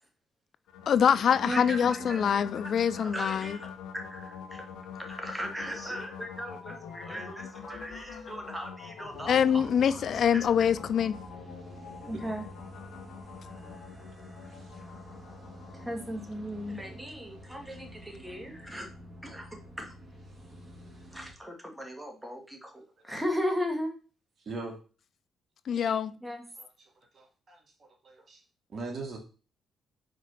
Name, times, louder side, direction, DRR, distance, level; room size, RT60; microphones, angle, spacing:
sound 1, 0.7-16.9, left 7 dB, 85° left, 1.1 m, -45 dB
voice 1, 0.9-3.6 9.3-11.2 25.7-26.1, left 8 dB, 60° left, 0.3 m, -25 dB
voice 2, 1.4-2.3 2.9-4.6 5.0-10.0 12.0-12.5 15.7-18.9 19.2-19.5 19.8-19.9 21.1-24.0 26.2-26.4, equal, 5° right, 2.0 m, -37 dB
sound 2, 9.1-21.3, equal, 25° right, 3.2 m, -48 dB
voice 3, 24.5-24.8 26.6-26.7 27.1-28.4 28.7-29.2, right 3 dB, 45° right, 2.5 m, -40 dB
5.1 x 4.9 x 5.7 m
cardioid pair, 90°, 0 cm